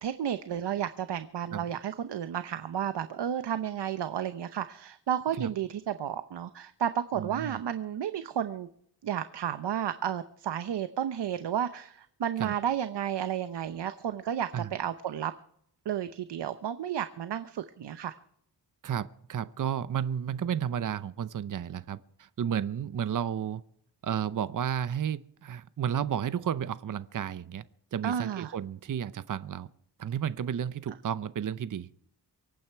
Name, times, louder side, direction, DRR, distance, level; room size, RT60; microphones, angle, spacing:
voice 1, 0.0-8.7 9.0-15.3 15.8-18.1 28.0-28.5, right 9 dB, 75° right, 11 dB, 0.8 m, -32 dB
voice 2, 7.2-7.6 12.4-12.5 14.5-14.7 18.8-23.6 24.0-27.6 27.9-29.7 30.0-31.9, right 9 dB, 50° right, 15 dB, 0.7 m, -32 dB
24.5 x 9.3 x 4.6 m, 0.69 s
wide cardioid pair, 115°, 42 cm